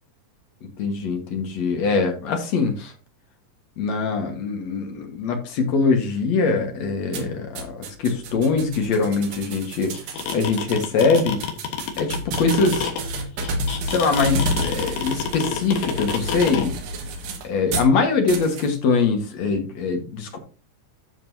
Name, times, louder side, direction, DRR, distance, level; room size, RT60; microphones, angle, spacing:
voice 1, 0.8-2.9 3.8-9.9 10.3-11.4 12.0-12.8 13.8-16.7 17.4-20.4, left 4 dB, 60° left, 5 dB, 2.5 m, -22 dB
sound 1, 7.1-17.9 18.3-18.7, right 1 dB, 85° right, 3.1 m, -30 dB
sound 2, 9.9-16.6, left 7 dB, 80° left, 3.1 m, -27 dB
11.0 x 7.2 x 2.7 m, 0.34 s
omnidirectional pair, 3.8 m